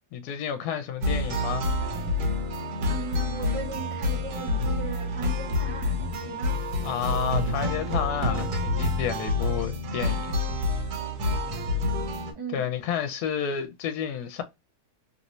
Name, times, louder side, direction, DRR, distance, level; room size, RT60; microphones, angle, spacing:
voice 1, 0.1-1.7 6.8-10.3 12.5-14.4, left 8 dB, 80° left, 1.1 m, -30 dB
sound 1, 1.0-12.3, left 2 dB, 80° right, 1.4 m, -28 dB
voice 2, 2.9-6.0 6.2-6.6 12.3-12.6, right 5 dB, 35° right, 0.5 m, -38 dB
3.1 x 2.7 x 2.9 m
omnidirectional pair, 1.7 m